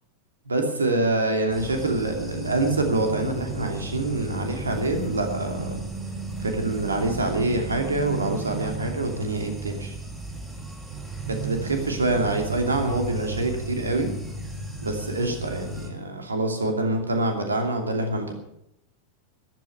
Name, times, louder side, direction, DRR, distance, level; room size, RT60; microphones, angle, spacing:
voice 1, 0.5-5.8 6.4-9.9 11.2-14.1 14.8-18.3, right 2 dB, 75° right, 4 dB, 2.7 m, -26 dB
sound 1, 1.5-15.9, right 2 dB, 15° right, 4.3 m, -35 dB
14.5 x 12.5 x 7.0 m, 0.79 s
figure-of-eight pair, 90°, 0 cm